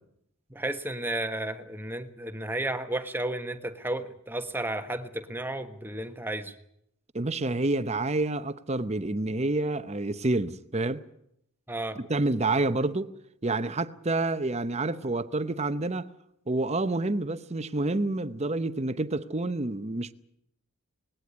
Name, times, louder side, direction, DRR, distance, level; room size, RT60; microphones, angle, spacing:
voice 1, 0.5-6.5 11.7-12.0, right 1 dB, 10° right, 1.2 m, -33 dB
voice 2, 7.1-11.0 12.1-13.1 13.4-16.1 16.5-20.1, right 2 dB, 30° right, 0.8 m, -28 dB
20.0 x 17.0 x 9.7 m
head